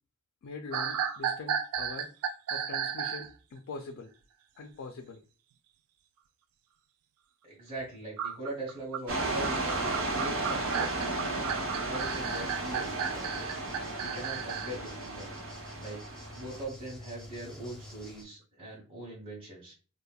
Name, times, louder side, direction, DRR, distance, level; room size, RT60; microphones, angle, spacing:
voice 1, 0.4-2.1 2.5-4.1 4.6-5.2, left 3 dB, 65° left, 5 dB, 0.3 m, -43 dB
sound 1, 0.7-3.3 8.2-14.8, right 8 dB, 85° right, 0.3 m, -34 dB
voice 2, 7.4-10.9 11.3-15.3 15.8-16.0 16.3-19.7, right 1 dB, 25° right, -6 dB, 0.9 m, -42 dB
sound 2, 9.1-16.6, right 2 dB, 65° right, 0.8 m, -34 dB
sound 3, 12.0-18.2, left 1 dB, 5° left, 0.5 m, -48 dB
3.3 x 2.0 x 2.2 m, 0.37 s
head